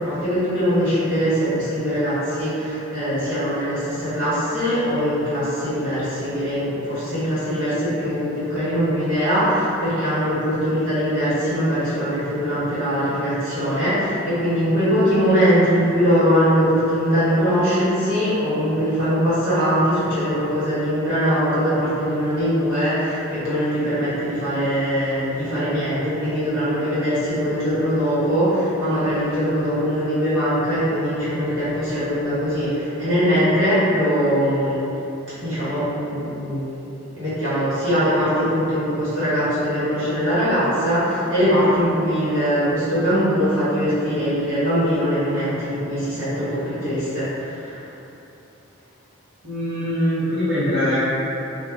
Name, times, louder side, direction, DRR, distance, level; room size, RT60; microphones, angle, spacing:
voice 1, 0.0-34.8 35.4-36.8 37.2-47.8, equal, 70° right, -13 dB, 1.5 m, -21 dB
voice 2, 49.4-51.0, equal, 50° right, -17 dB, 1.0 m, -22 dB
2.5 x 2.5 x 3.4 m, 3.0 s
head